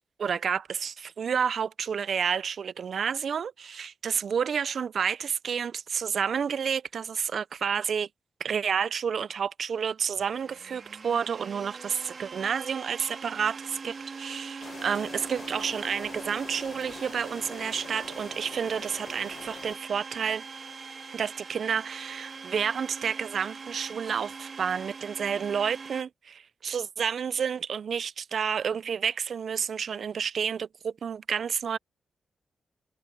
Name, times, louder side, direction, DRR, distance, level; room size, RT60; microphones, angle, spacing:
voice 1, 0.2-8.1 8.4-20.4 21.1-31.8, right 7 dB, 60° right, 0.3 m, -30 dB
Domestic sounds home sounds, 10.1-26.0, right 5 dB, 45° right, 1.7 m, -42 dB
sound 1, 14.6-19.8, left 6 dB, 55° left, 1.1 m, -45 dB
wide cardioid pair, 125°, 0 cm